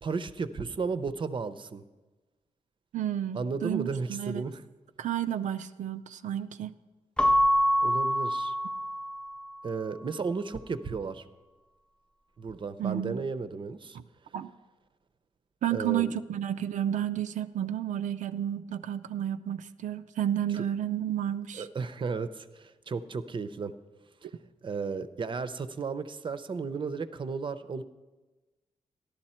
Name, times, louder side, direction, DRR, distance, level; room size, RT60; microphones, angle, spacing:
voice 1, 0.0-1.8 3.3-4.6 7.8-8.5 9.6-11.2 12.4-14.0 15.7-16.1 20.5-20.6 21.6-23.7 24.6-27.8, right 4 dB, 40° right, 13 dB, 0.6 m, -34 dB
voice 2, 2.9-4.5 5.0-6.8 12.8-13.2 14.3-14.5 15.6-21.7, right 10 dB, 85° right, 9 dB, 0.4 m, -31 dB
Keyboard (musical) / Bell, 7.2-9.6, equal, 5° left, 0.4 m, -26 dB
13.5 x 11.5 x 4.3 m, 1.2 s
wide cardioid pair, 125°, 12 cm